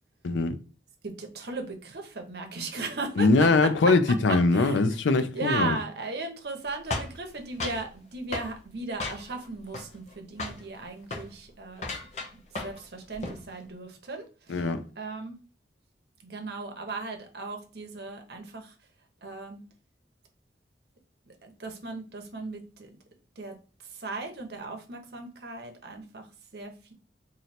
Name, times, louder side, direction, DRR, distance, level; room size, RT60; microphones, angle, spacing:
voice 1, 0.2-0.6 3.2-5.8 14.5-14.8, left 3 dB, 85° left, 0.5 m, -22 dB
voice 2, 1.0-3.3 3.6-3.7 4.3-4.8 5.1-11.9 12.6-14.7 15.0-15.4 16.2-18.7 19.2-19.6 21.3-22.9 23.4-23.6 23.9-26.3 26.5-26.9, right 3 dB, 60° right, 0.8 m, -37 dB
sound 1, 6.9-7.9 8.3-8.5 9.0-9.5 9.7-10.1 10.4-10.6 11.0-11.3 11.8-12.9 13.1-13.4, left 2 dB, 35° left, 0.8 m, -35 dB
3.1 x 2.7 x 4.2 m
head